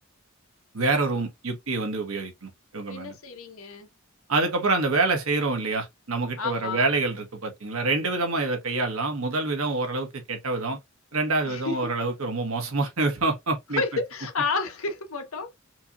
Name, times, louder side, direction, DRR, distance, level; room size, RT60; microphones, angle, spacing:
voice 1, 0.7-3.1 4.3-10.8 11.1-13.8, right 3 dB, 85° right, 1.3 m, -26 dB
voice 2, 2.9-3.9 6.4-6.8 11.4-11.8 13.7-15.5, left 4 dB, 80° left, 1.3 m, -30 dB
4.4 x 2.9 x 2.5 m
head